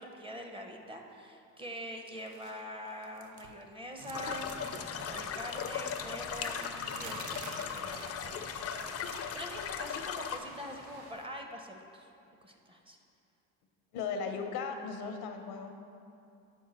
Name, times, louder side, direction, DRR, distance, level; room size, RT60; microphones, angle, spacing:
voice 1, 0.0-12.1 12.4-13.0, equal, 15° right, 3 dB, 0.7 m, -45 dB
sound 1, 2.2-2.6 2.9-3.7 4.0-9.5 9.8-10.1 11.2-11.3, right 6 dB, 50° right, 0.6 m, -51 dB
sound 2, 4.0-11.1, right 1 dB, 75° right, 1.5 m, -50 dB
sound 3, 4.1-10.4, left 7 dB, 40° left, 0.5 m, -38 dB
voice 2, 13.9-15.7, left 5 dB, 75° left, 5 dB, 0.7 m, -37 dB
7.6 x 4.6 x 4.2 m, 2.7 s
supercardioid pair, 85°, 37 cm